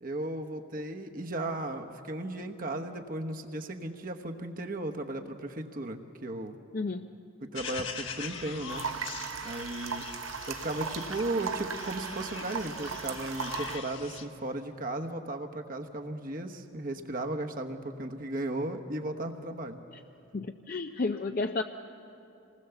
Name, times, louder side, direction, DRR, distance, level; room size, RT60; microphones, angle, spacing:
voice 1, 0.0-6.6 7.4-8.9 9.4-10.0 10.5-19.8, right 1 dB, 40° right, 4 dB, 1.1 m, -35 dB
voice 2, 6.7-7.1 20.3-21.6, left 3 dB, 45° left, 6 dB, 0.5 m, -31 dB
sound 1, 7.6-14.3, left 5 dB, 65° left, 1.4 m, -42 dB
sound 2, 8.7-13.8, right 6 dB, 85° right, 0.8 m, -37 dB
27.0 x 19.5 x 7.0 m, 2.8 s
head